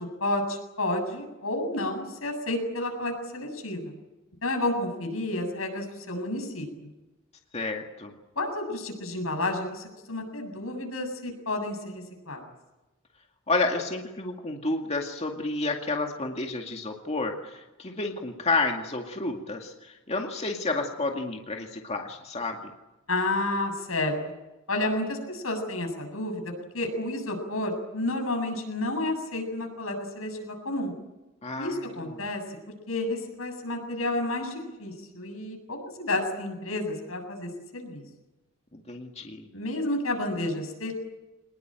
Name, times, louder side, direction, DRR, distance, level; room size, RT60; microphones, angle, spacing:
voice 1, 0.0-3.9 4.4-6.9 8.4-12.4 23.1-24.1 24.7-30.9 31.6-38.0 39.5-40.9, left 2 dB, 85° left, 4 dB, 7.7 m, -31 dB
voice 2, 7.5-8.1 13.5-22.7 31.4-31.9 38.7-39.4, left 3 dB, 30° left, 2 dB, 2.2 m, -30 dB
24.5 x 20.5 x 9.1 m, 1.0 s
head